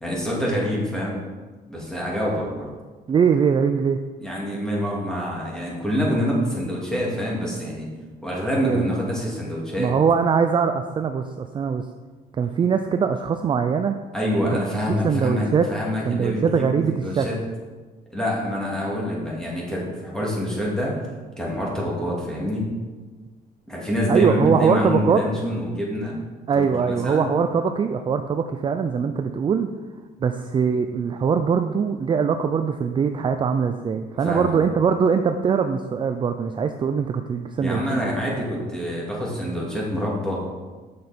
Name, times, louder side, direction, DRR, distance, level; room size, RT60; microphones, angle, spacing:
voice 1, 0.0-1.2 1.7-2.7 4.2-7.9 8.2-9.9 14.1-17.4 18.1-21.0 21.4-22.7 23.7-26.2 26.5-27.3 34.2-34.6 37.6-40.4, equal, 5° left, -4 dB, 2.5 m, -26 dB
voice 2, 3.1-4.0 8.6-8.9 9.8-11.8 12.4-14.0 15.0-15.7 16.1-17.3 24.1-25.2 26.5-29.7 30.2-38.1, right 6 dB, 30° right, 7 dB, 0.4 m, -22 dB
6.9 x 6.6 x 4.3 m, 1.3 s
cardioid pair, 110°, 17 cm